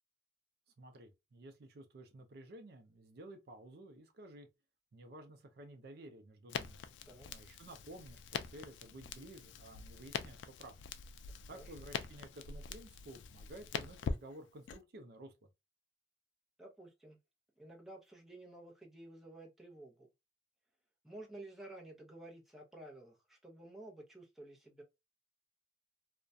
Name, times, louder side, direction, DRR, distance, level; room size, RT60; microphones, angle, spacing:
voice 1, 0.8-4.5 4.9-6.8 7.3-10.7 11.5-15.3, right 1 dB, 60° right, 0.5 m, -53 dB
Crackle, 6.5-14.8, left 6 dB, 75° left, 0.3 m, -44 dB
voice 2, 16.6-17.2 17.6-20.1 21.0-24.8, right 1 dB, ahead, 0.6 m, -52 dB
2.3 x 2.1 x 2.6 m
head